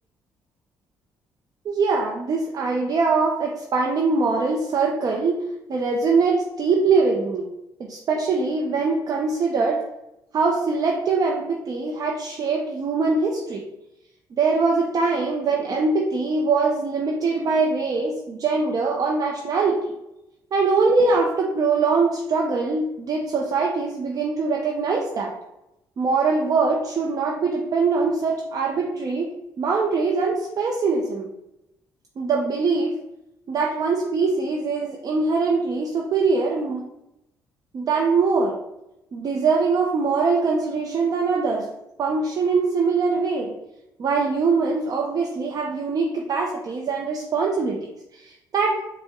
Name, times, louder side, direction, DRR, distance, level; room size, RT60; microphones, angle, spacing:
voice 1, 1.6-5.4 5.7-7.5 7.8-9.8 10.3-13.6 14.3-19.9 20.5-25.3 26.0-29.3 29.6-31.3 32.2-33.0 33.5-36.9 37.7-38.6 39.1-41.7 42.0-43.5 44.0-48.8, right 4 dB, 50° right, 0 dB, 0.5 m, -22 dB
5.1 x 2.1 x 3.6 m, 0.89 s
cardioid pair, 85°, 8 cm